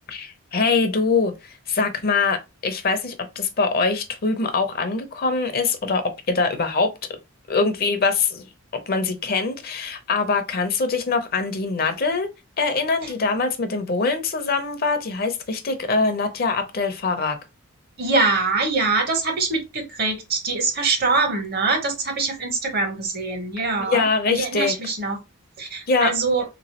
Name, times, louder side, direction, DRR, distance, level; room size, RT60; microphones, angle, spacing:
voice 1, 0.1-6.9 7.5-8.5 8.9-12.3 12.6-17.4 23.8-24.7 25.9-26.1, left 4 dB, 45° left, 0.6 m, -23 dB
voice 2, 18.0-25.2 25.6-26.4, right 3 dB, 45° right, 1.0 m, -23 dB
3.3 x 3.0 x 2.8 m
head